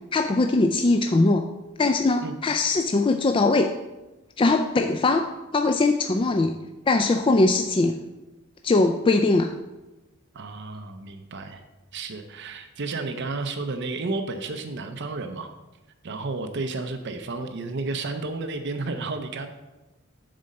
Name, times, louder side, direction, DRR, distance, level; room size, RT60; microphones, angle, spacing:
voice 1, 0.1-1.4 1.8-3.7 4.4-5.2 5.5-6.6 6.9-8.0 8.6-9.5, left 3 dB, 25° left, 6 dB, 0.3 m, -21 dB
voice 2, 10.3-11.6 11.9-15.5 16.0-19.5, right 3 dB, 55° right, 7 dB, 0.6 m, -32 dB
7.6 x 4.2 x 6.5 m, 1.1 s
head